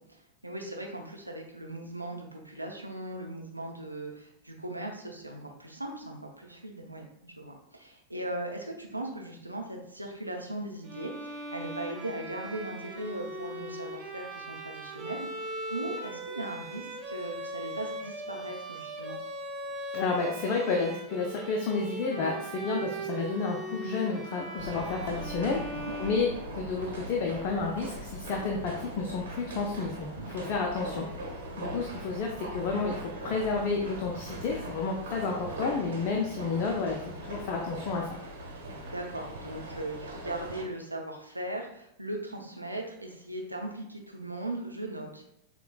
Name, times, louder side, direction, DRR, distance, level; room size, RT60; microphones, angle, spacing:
voice 1, 0.4-19.2 25.5-25.9 30.1-30.6 38.5-45.3, right 1 dB, 85° right, 1 dB, 0.6 m, -39 dB
Bowed string instrument, 10.8-26.8, right 2 dB, 20° right, 0.9 m, -39 dB
voice 2, 19.9-25.6 26.0-31.1 31.6-38.1, left 4 dB, 40° left, 0 dB, 0.5 m, -31 dB
sound 1, 24.6-40.6, right 1 dB, 60° right, 1.0 m, -40 dB
6.7 x 2.3 x 2.3 m, 0.76 s
figure-of-eight pair, 90°, 0 cm